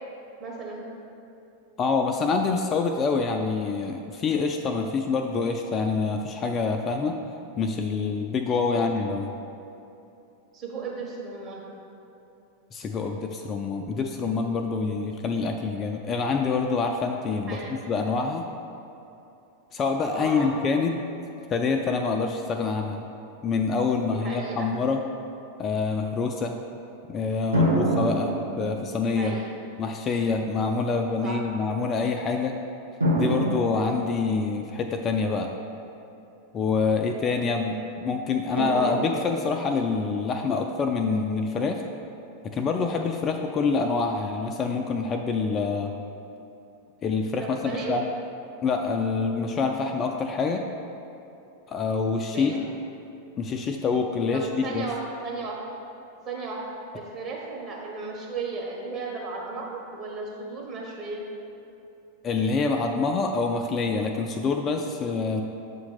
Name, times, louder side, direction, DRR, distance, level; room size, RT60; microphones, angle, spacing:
voice 1, 0.4-0.8 8.7-8.9 10.5-11.7 17.3-17.7 20.1-20.5 24.1-24.7 29.2-29.6 31.2-31.4 47.4-48.0 52.3-52.6 54.3-55.6 56.2-56.6 56.9-61.2, right 4 dB, 30° right, -3 dB, 1.4 m, -35 dB
voice 2, 1.8-7.2 7.6-9.3 12.7-18.4 19.7-20.9 21.5-23.0 23.4-25.0 25.6-26.5 27.1-29.4 29.8-32.6 33.1-35.5 36.5-41.8 42.4-45.9 47.0-48.1 48.6-50.6 51.7-52.5 53.4-54.9 62.2-65.4, left 4 dB, 25° left, 3 dB, 0.3 m, -26 dB
sound 1, 27.5-29.3 30.2-30.3 33.0-34.7 38.6-39.9, right 1 dB, 80° right, 1.0 m, -27 dB
7.5 x 2.9 x 5.7 m, 2.8 s
figure-of-eight pair, 90°, 0 cm